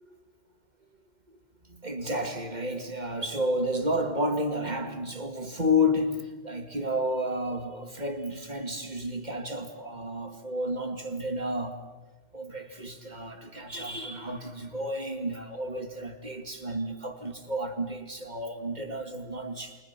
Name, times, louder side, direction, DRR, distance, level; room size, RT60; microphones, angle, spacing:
voice 1, 1.7-6.2 6.4-11.8 12.3-19.8, left 1 dB, 40° right, 2.3 m, -31 dB
28.0 x 25.0 x 5.9 m
omnidirectional pair, 1.2 m